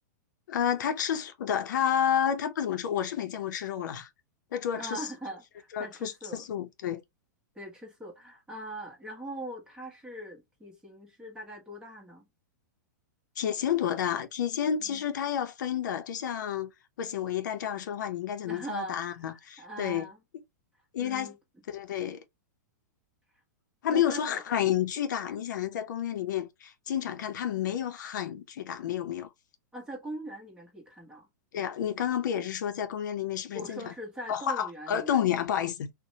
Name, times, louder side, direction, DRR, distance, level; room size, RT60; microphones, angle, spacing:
voice 1, 0.5-4.1 4.5-5.1 5.7-7.0 13.4-16.7 17.0-20.1 20.9-21.3 21.7-22.2 23.8-29.3 31.5-33.9 34.3-35.9, left 9 dB, 75° left, 0.6 m, -30 dB
voice 2, 4.7-6.5 7.5-12.3 14.8-15.0 18.4-20.2 21.0-21.4 23.9-24.4 28.8-28.9 29.7-31.3 33.5-35.2, right 1 dB, 5° right, 1.0 m, -41 dB
2.7 x 2.1 x 2.7 m
hypercardioid pair, 145°, 10 cm